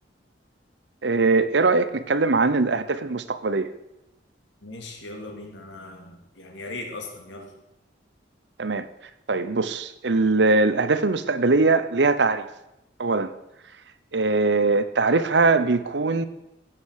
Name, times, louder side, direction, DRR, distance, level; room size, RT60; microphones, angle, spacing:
voice 1, 1.0-3.7 8.6-8.9 9.3-12.5 13.0-13.3 14.1-16.3, right 3 dB, 70° right, 12 dB, 0.8 m, -21 dB
voice 2, 4.6-7.5, left 2 dB, 90° left, 3 dB, 2.7 m, -38 dB
16.0 x 7.7 x 6.6 m, 0.90 s
head